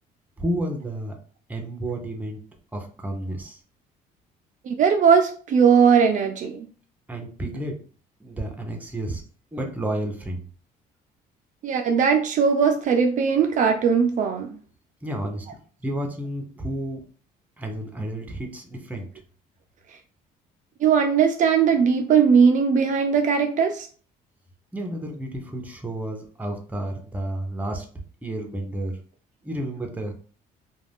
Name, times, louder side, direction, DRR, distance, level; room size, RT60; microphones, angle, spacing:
voice 1, 0.4-1.2 1.5-2.4 2.7-3.6 7.1-7.8 8.2-9.2 9.5-10.4 15.0-15.5 15.8-17.0 17.6-19.1 24.7-27.9 28.2-29.0 29.4-30.1, right 1 dB, 10° right, 3 dB, 0.6 m, -31 dB
voice 2, 4.6-6.7 11.6-14.5 20.8-23.9, right 6 dB, 50° right, 4 dB, 0.4 m, -19 dB
2.4 x 2.2 x 3.3 m, 0.42 s
cardioid pair, 110°, 17 cm